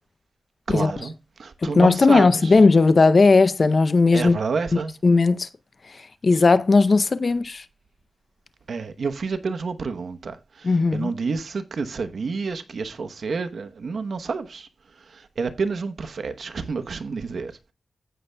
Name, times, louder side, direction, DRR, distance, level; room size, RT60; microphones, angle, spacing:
voice 1, 0.7-2.6 4.1-4.9 8.7-14.7 15.0-17.7, right 4 dB, 75° right, 0.9 m, -29 dB
voice 2, 1.6-4.4 5.0-5.5 6.2-7.6 10.6-11.1, left 3 dB, 55° left, 0.6 m, -17 dB
15.5 x 6.5 x 2.2 m
cardioid pair, 65°, 0 cm